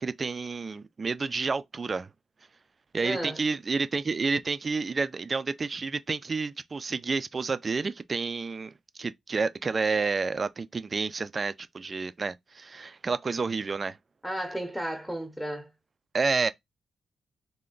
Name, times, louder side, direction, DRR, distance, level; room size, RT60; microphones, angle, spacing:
voice 1, 0.0-2.1 2.9-14.0 16.1-16.5, right 4 dB, 35° right, 0.4 m, -30 dB
voice 2, 3.0-3.4 14.2-15.7, right 1 dB, 5° left, 0.8 m, -33 dB
3.2 x 2.2 x 3.8 m
cardioid pair, 100°, 0 cm